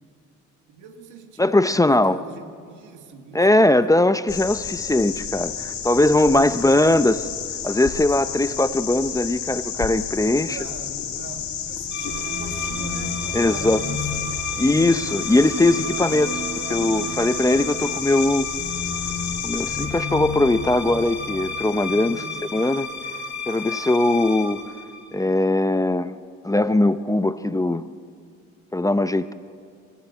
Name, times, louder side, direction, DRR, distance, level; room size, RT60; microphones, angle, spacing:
voice 1, 0.7-3.8 6.0-7.1 8.2-8.4 10.3-14.1 21.9-22.4, right 6 dB, 85° right, 6 dB, 2.0 m, -42 dB
voice 2, 1.4-2.2 3.3-7.2 7.6-10.6 13.3-13.8 14.6-16.4 16.7-18.5 19.4-22.2 22.5-22.9 23.5-24.6 25.1-26.1 26.4-27.9 28.7-29.3, left 2 dB, 10° left, 12 dB, 0.6 m, -20 dB
sound 1, 4.3-19.9, left 8 dB, 70° left, 2.8 m, -31 dB
sound 2, 11.9-25.5, left 5 dB, 40° left, 2.9 m, -31 dB
sound 3, 11.9-18.0, right 8 dB, 45° right, 0.7 m, -37 dB
27.0 x 15.0 x 8.2 m, 2.3 s
cardioid pair, 90°, 30 cm